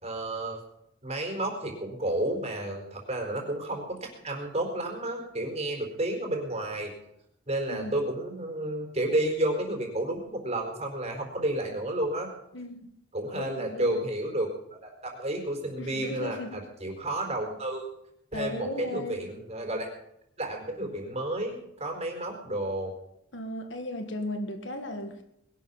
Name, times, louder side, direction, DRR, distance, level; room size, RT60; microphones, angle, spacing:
voice 1, 0.0-0.6 1.0-4.0 4.2-6.9 7.5-12.3 13.1-17.9 18.3-19.9 20.4-22.9, right 1 dB, 35° right, 2 dB, 4.4 m, -31 dB
voice 2, 12.5-12.9 13.4-14.0 15.8-16.5 18.3-19.2 23.3-25.2, left 1 dB, 70° left, 6 dB, 1.8 m, -36 dB
21.0 x 12.0 x 5.6 m, 0.79 s
head